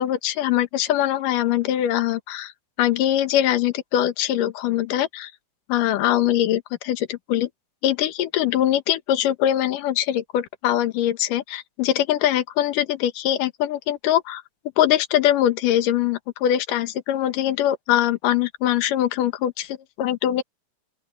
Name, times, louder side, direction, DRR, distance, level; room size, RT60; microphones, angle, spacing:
voice 1, 0.0-2.5 2.8-5.3 5.7-7.5 7.8-14.4 14.8-20.4, left 12 dB, 80° left, 2.8 m, -22 dB
open air
omnidirectional pair, 3.9 m